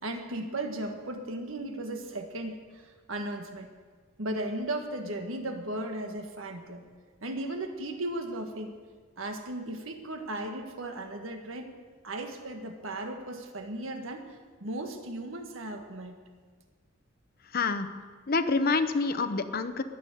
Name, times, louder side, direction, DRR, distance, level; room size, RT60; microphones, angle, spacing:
voice 1, 0.0-3.7 4.2-6.8 7.2-8.7 9.2-11.7 12.0-16.2, right 1 dB, 80° right, 5 dB, 1.7 m, -36 dB
voice 2, 17.5-17.9 18.3-19.8, left 4 dB, 45° left, 10 dB, 0.8 m, -27 dB
21.0 x 7.1 x 7.9 m, 1.5 s
head